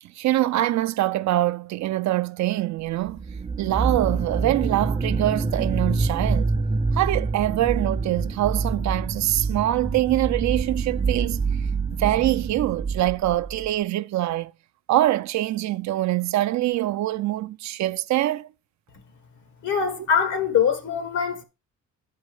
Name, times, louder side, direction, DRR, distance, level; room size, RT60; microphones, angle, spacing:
voice 1, 0.0-3.2 3.6-6.5 6.9-11.4 12.0-14.5 14.9-18.5, right 15 dB, 70° right, 0.5 m, -24 dB
sound 1, 3.1-13.7, right 4 dB, 20° right, 0.5 m, -26 dB
voice 2, 19.6-21.4, left 7 dB, 75° left, 1.7 m, -23 dB
9.3 x 5.3 x 4.7 m
cardioid pair, 90°, 30 cm